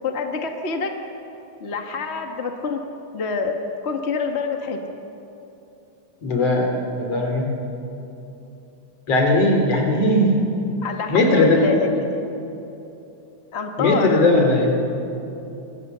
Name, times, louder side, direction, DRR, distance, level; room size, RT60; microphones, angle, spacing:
voice 1, 0.0-0.9 1.6-2.8 3.1-3.5 3.8-4.8 10.8-12.3 13.5-14.3, left 5 dB, 35° left, 4 dB, 1.0 m, -26 dB
voice 2, 6.2-6.7 7.0-7.5 9.1-10.4 11.1-11.6 13.8-14.7, left 2 dB, 55° left, 2 dB, 4.3 m, -18 dB
27.0 x 23.0 x 6.9 m, 2.9 s
omnidirectional pair, 3.5 m